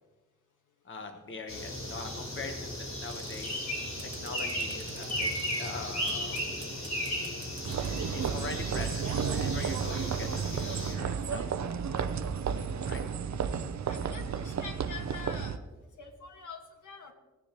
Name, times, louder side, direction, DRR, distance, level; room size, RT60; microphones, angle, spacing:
voice 1, 0.8-3.6 4.0-5.3 5.6-6.7 8.1-12.2 12.5-13.0, left 3 dB, 40° left, 5 dB, 1.0 m, -43 dB
sound 1, 1.5-10.9, equal, 60° left, 3.7 m, -36 dB
sound 2, 3.1-3.6 4.0-5.7 6.1-8.1, right 2 dB, 15° right, 1.3 m, -49 dB
sound 3, 7.6-15.6, right 7 dB, 65° right, 0.6 m, -32 dB
voice 2, 13.8-15.6 16.0-17.1, left 5 dB, 80° left, 4 dB, 1.6 m, -45 dB
17.5 x 9.8 x 3.0 m, 1.3 s
wide cardioid pair, 125°, 30 cm